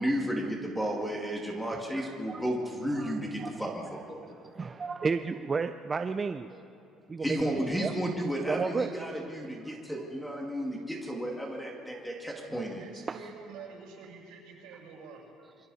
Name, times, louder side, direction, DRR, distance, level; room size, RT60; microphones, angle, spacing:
voice 1, 0.0-4.2 7.2-12.8, equal, ahead, 0 dB, 2.2 m, -33 dB
voice 2, 1.6-2.4 2.9-3.1 3.4-3.5 4.2-6.6 7.1-7.9 8.4-8.9 13.1-13.2, right 4 dB, 20° right, 8 dB, 0.5 m, -33 dB
voice 3, 12.5-15.3, right 5 dB, 80° right, -2 dB, 6.8 m, -47 dB
27.5 x 23.5 x 4.2 m, 2.6 s
cardioid pair, 155°, 0 cm